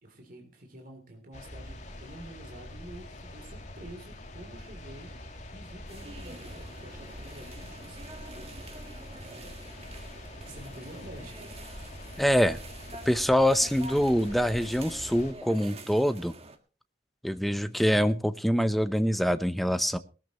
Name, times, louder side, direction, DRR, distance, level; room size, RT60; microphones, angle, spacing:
voice 1, 0.0-8.6 10.3-11.6, right 1 dB, 50° right, 3 dB, 3.4 m, -48 dB
sound 1, 1.3-15.3, left 1 dB, 40° left, 2.9 m, -44 dB
sound 2, 5.9-16.6, right 2 dB, 35° right, 1.7 m, -47 dB
voice 2, 12.2-12.6 13.1-16.3 17.2-20.0, equal, ahead, 11 dB, 0.8 m, -25 dB
20.5 x 13.5 x 3.1 m, 0.34 s
head